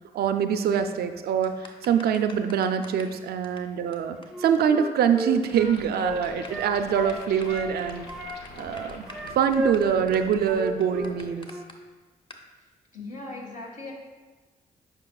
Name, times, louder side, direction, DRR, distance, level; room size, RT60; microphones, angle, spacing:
voice 1, 0.1-8.1 8.6-9.1 9.3-11.5, right 8 dB, 75° right, 9 dB, 0.4 m, -24 dB
sound 1, 1.4-3.2 3.4-3.6 3.9-4.0 4.2-4.3 4.5-4.6 4.9-5.5 5.8-5.9 6.2-11.7 12.3-12.4, left 2 dB, 30° left, 0.9 m, -46 dB
Wind instrument woodwind instrument, 4.3-7.7 8.1-11.2 11.4-11.7, right 1 dB, 5° right, 0.7 m, -33 dB
sound 2, 5.5-11.3, left 3 dB, 80° left, 0.8 m, -45 dB
voice 2, 12.9-13.9, left 2 dB, 55° left, -1 dB, 1.8 m, -38 dB
8.8 x 5.4 x 2.3 m, 1.3 s
supercardioid pair, 50°, 17 cm